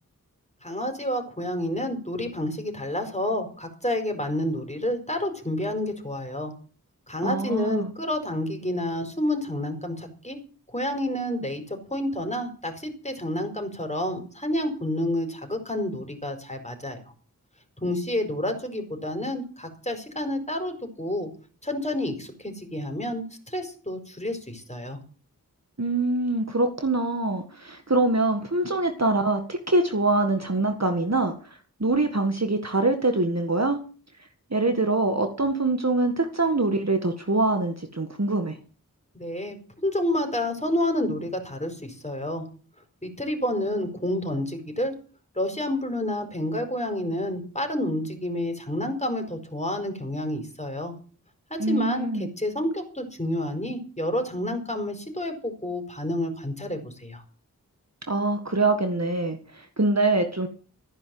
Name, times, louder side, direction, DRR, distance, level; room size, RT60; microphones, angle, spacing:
voice 1, 0.6-6.5 7.1-10.4 10.7-17.0 17.8-21.3 21.6-25.0 39.1-39.6 39.8-42.4 43.0-44.9 45.4-50.9 51.5-57.2, left 1 dB, 20° left, 5 dB, 4.8 m, -29 dB
voice 2, 7.2-7.9 25.8-31.3 31.8-33.8 34.5-38.6 51.6-52.3 58.1-60.5, right 2 dB, 45° right, 6 dB, 1.7 m, -24 dB
15.0 x 10.0 x 7.8 m, 0.40 s
wide cardioid pair, 40°, 36 cm